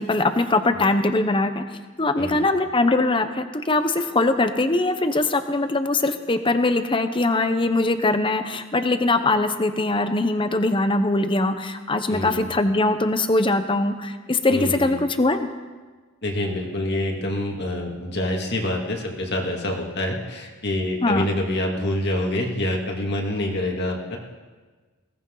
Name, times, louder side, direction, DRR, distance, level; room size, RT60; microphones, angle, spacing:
voice 1, 0.0-1.6 2.0-15.5 21.0-21.3, left 2 dB, 25° left, 9 dB, 0.8 m, -22 dB
voice 2, 2.2-2.5 12.1-12.4 14.5-15.0 16.2-24.2, left 1 dB, 50° left, 0 dB, 2.4 m, -26 dB
21.0 x 17.0 x 3.9 m, 1.4 s
head